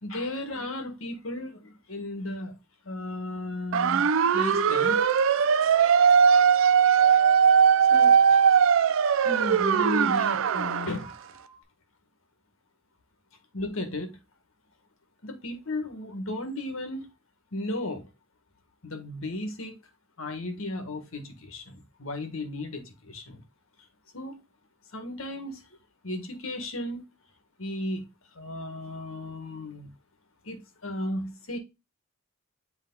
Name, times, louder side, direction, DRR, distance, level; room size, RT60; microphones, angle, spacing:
voice 1, 0.0-2.6 2.8-5.0 7.9-8.4 9.2-11.1 13.5-14.2 15.2-17.1 17.5-18.1 18.8-19.8 20.2-23.4 24.1-24.4 24.9-25.7 26.0-27.0 27.6-28.1 28.3-29.9 30.4-31.6, left 1 dB, 75° left, 1.6 m, -35 dB
sound 1, 3.7-10.9, right 7 dB, 65° right, 0.4 m, -20 dB
sound 2, 4.7-11.6, right 2 dB, 5° left, 3.4 m, -47 dB
8.2 x 3.4 x 3.8 m
head